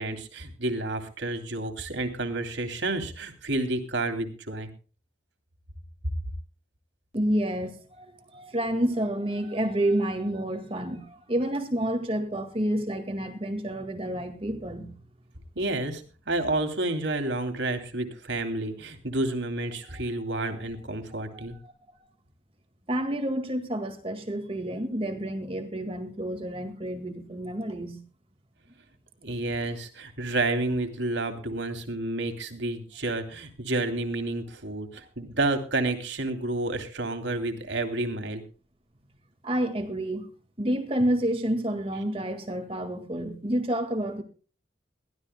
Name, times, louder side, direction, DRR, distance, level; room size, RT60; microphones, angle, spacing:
voice 1, 0.0-4.7 15.5-21.6 29.2-38.4, right 2 dB, 80° right, 2.9 m, -30 dB
voice 2, 7.1-14.9 19.9-20.6 21.2-21.7 22.9-28.0 39.4-40.3 40.6-44.2, right 1 dB, 30° right, 1.8 m, -29 dB
22.5 x 15.5 x 2.2 m
head